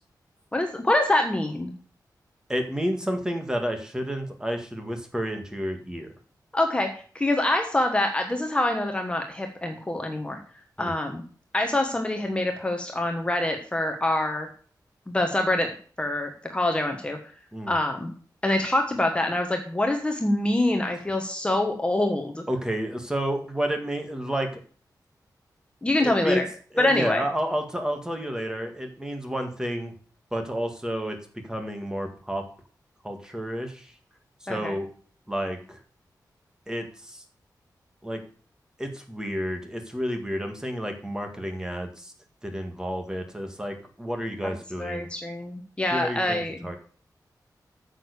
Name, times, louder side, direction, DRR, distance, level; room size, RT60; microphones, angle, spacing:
voice 1, 0.5-1.7 6.5-6.9 7.1-10.4 10.8-11.2 11.5-14.5 15.1-17.2 17.7-18.1 18.4-22.4 25.8-26.4 26.8-27.2 34.5-34.7 44.8-46.7, left 1 dB, 15° left, 4 dB, 1.3 m, -25 dB
voice 2, 2.5-6.1 10.8-10.9 17.5-17.7 22.5-24.6 26.0-26.4 26.7-29.9 30.3-31.2 31.4-32.4 33.0-33.9 34.4-34.9 35.3-35.8 36.7-37.2 38.0-38.2 38.8-42.1 42.4-45.1 45.9-46.7, equal, 10° right, 5 dB, 1.8 m, -30 dB
9.4 x 6.6 x 6.8 m, 0.42 s
wide cardioid pair, 165°, 7 cm